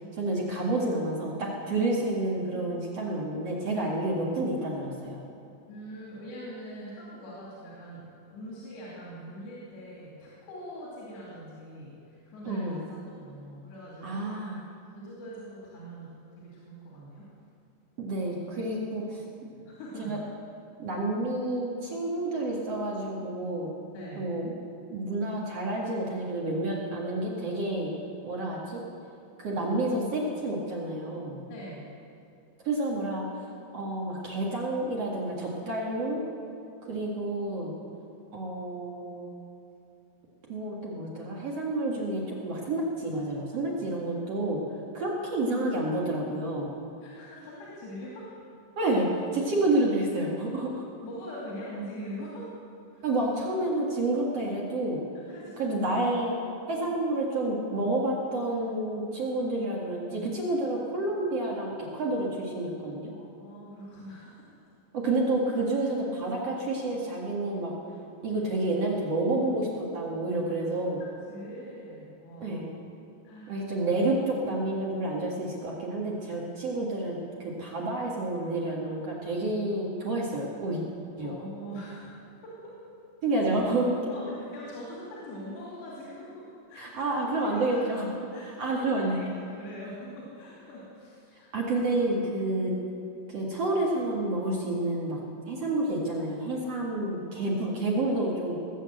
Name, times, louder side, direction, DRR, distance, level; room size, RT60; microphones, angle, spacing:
voice 1, 0.1-5.2 12.5-12.8 14.0-14.6 18.0-19.2 20.0-20.2 20.8-23.7 24.2-24.5 24.9-27.9 28.2-28.8 29.4-31.4 32.6-33.3 33.7-36.2 36.8-37.7 38.3-39.3 40.5-44.6 44.9-46.7 48.8-50.8 53.0-55.0 55.6-56.4 56.7-63.1 64.9-67.7 68.2-71.0 72.4-72.7 73.5-80.8 81.2-81.5 83.2-84.0 86.7-88.1 88.6-89.3 91.5-92.7 93.3-95.2 95.5-98.6, right 2 dB, 50° right, -3 dB, 2.2 m, -29 dB
voice 2, 5.7-12.8 13.1-14.3 14.9-16.1 16.4-17.3 18.9-19.0 19.5-20.2 23.9-24.3 31.5-31.9 47.0-48.3 51.0-52.5 52.9-53.1 55.3-55.8 63.1-64.4 71.0-72.6 73.2-73.6 81.2-82.9 84.1-87.0 87.3-87.8 88.3-91.5 91.8-92.2, equal, 80° left, -6 dB, 4.7 m, -43 dB
19.5 x 8.0 x 7.8 m, 2.7 s
omnidirectional pair, 4.9 m